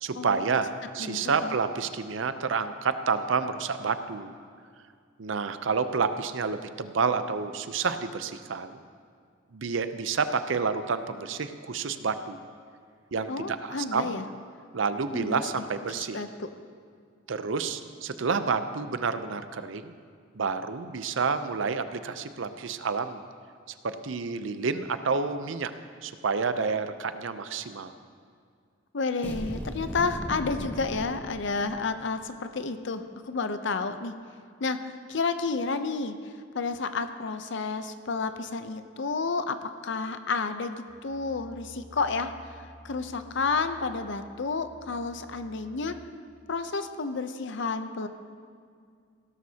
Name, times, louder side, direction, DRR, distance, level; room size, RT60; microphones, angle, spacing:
voice 1, 0.0-4.3 5.2-8.8 9.5-12.4 13.1-14.1 14.7-16.2 17.3-19.9 20.3-23.2 23.8-25.7 26.0-27.9, right 5 dB, 70° right, 10 dB, 0.6 m, -29 dB
voice 2, 1.0-1.5 13.3-14.3 15.1-15.4 15.9-16.5 28.9-34.1 34.6-36.2 36.5-40.8 41.0-42.5 42.8-46.0 46.5-48.1, left 4 dB, 65° left, 10 dB, 0.7 m, -31 dB
sound 1, 29.2-32.0, equal, 10° left, 1.0 m, -37 dB
sound 2, 40.9-45.9, equal, 25° right, 2.2 m, -51 dB
16.5 x 12.5 x 2.8 m, 2.2 s
head